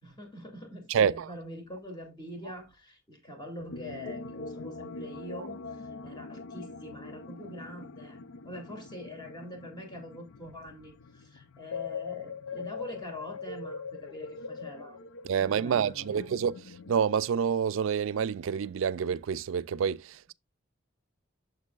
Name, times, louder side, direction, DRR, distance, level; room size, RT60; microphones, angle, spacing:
voice 1, 0.0-15.0 15.4-16.3, left 1 dB, 20° left, 2.6 m, -44 dB
voice 2, 0.9-1.3 15.2-16.6 16.9-20.3, right 7 dB, 80° right, 0.4 m, -28 dB
sound 1, 3.6-16.9, left 4 dB, 90° left, 0.6 m, -42 dB
8.3 x 6.8 x 2.4 m
head